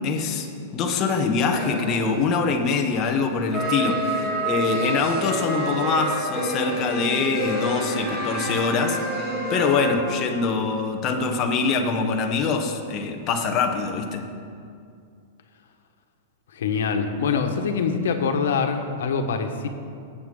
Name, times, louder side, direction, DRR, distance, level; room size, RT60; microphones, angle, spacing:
voice 1, 0.0-9.0 9.5-14.3, left 4 dB, 25° left, 3 dB, 0.9 m, -24 dB
sound 1, 1.5-2.3 3.5-9.9, right 1 dB, 15° right, 3.0 m, -28 dB
voice 2, 16.5-19.7, left 5 dB, 85° left, 5 dB, 1.2 m, -24 dB
19.0 x 7.7 x 3.8 m, 2.4 s
supercardioid pair, 175°, 0 cm